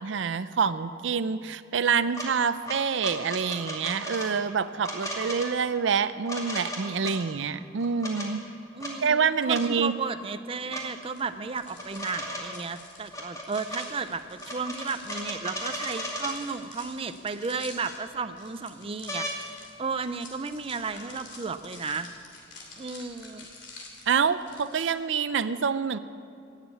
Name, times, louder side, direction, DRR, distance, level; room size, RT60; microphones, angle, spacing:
voice 1, 0.0-8.4 9.0-9.9 24.1-26.0, right 6 dB, 80° right, 14 dB, 0.5 m, -26 dB
sound 1, 2.1-2.3 2.7-4.3 4.8-5.5 6.3-7.2 7.8-8.3 8.8-8.9 9.5-9.7 10.7-10.8 11.7-12.6 13.1-13.8 14.4-16.4 17.4-17.5 17.8-18.4 19.1-19.4 20.9-21.0, equal, 20° left, 2.3 m, -35 dB
voice 2, 8.7-22.1 22.8-23.5, right 4 dB, 30° right, 10 dB, 0.5 m, -34 dB
sound 2, 11.0-24.8, left 3 dB, 70° left, 2.9 m, -48 dB
18.5 x 7.4 x 8.4 m, 2.4 s
head